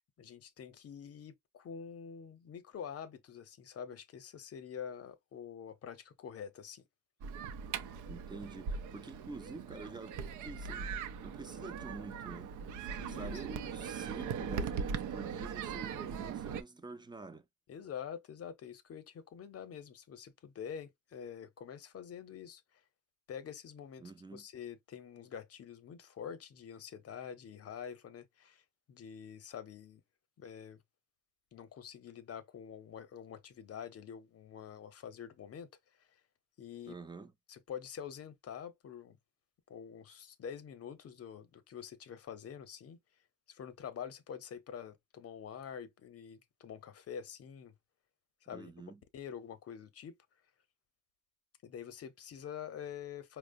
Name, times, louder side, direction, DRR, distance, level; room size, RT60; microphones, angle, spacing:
voice 1, 0.0-6.9 13.0-13.4 17.7-22.8 23.3-24.0 24.3-30.0 30.4-30.8 31.5-35.7 36.0-36.2 36.6-37.0 37.5-39.2 39.7-43.0 43.5-47.8 48.4-48.7 49.1-50.2 51.6-53.4, left 8 dB, 50° left, 0.7 m, -46 dB
sound 1, 7.2-16.6, right 6 dB, 80° right, 0.5 m, -40 dB
voice 2, 8.1-10.9 11.2-12.6 13.0-17.5 24.0-24.4 36.9-37.3 48.5-49.0, right 3 dB, 15° right, 0.4 m, -48 dB
4.7 x 2.1 x 2.5 m
cardioid pair, 90°, 30 cm